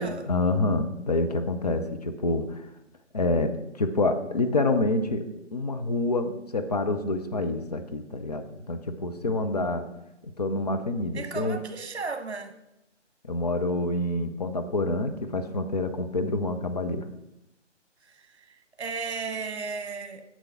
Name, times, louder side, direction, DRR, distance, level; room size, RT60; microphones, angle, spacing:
voice 1, 0.3-2.7 3.1-5.3 5.5-9.9 10.2-11.6 13.2-17.1, left 2 dB, 35° left, 0.6 m, -27 dB
voice 2, 11.1-12.6 18.0-20.3, right 4 dB, 60° right, 1.1 m, -35 dB
7.6 x 6.6 x 5.8 m
figure-of-eight pair, 140°, 37 cm